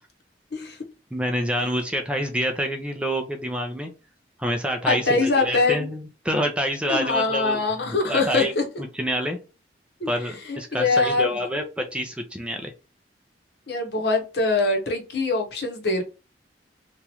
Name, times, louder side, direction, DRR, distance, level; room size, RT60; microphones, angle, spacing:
voice 1, 1.1-3.9 4.4-7.6 8.0-8.5 8.8-9.4 10.1-12.7, equal, 5° right, 4 dB, 0.4 m, -27 dB
voice 2, 4.8-5.9 6.9-8.6 10.0-10.1 10.4-11.4 13.7-16.0, left 3 dB, 65° left, 2 dB, 0.9 m, -23 dB
3.0 x 2.4 x 2.8 m, 0.31 s
head